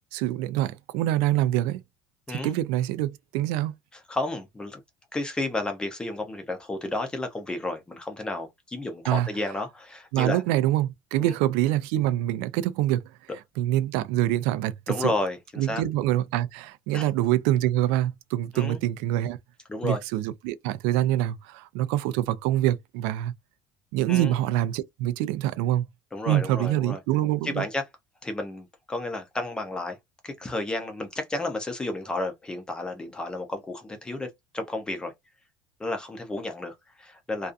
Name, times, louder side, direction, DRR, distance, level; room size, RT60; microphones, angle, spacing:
voice 1, 0.1-1.8 2.3-3.7 9.1-9.3 10.1-13.0 13.6-15.1 15.6-19.4 19.8-23.3 23.9-25.9 26.3-27.7, right 13 dB, 90° right, 0.4 m, -25 dB
voice 2, 2.3-2.6 4.1-4.8 5.1-10.4 11.2-11.4 14.9-15.8 16.9-17.1 18.5-18.8 19.7-20.0 24.1-24.3 26.1-27.0 27.4-27.8 28.2-30.0 30.2-34.3 34.5-35.1 35.8-37.5, left 2 dB, 10° left, 0.5 m, -32 dB
2.4 x 2.3 x 2.4 m
cardioid pair, 175°, 9 cm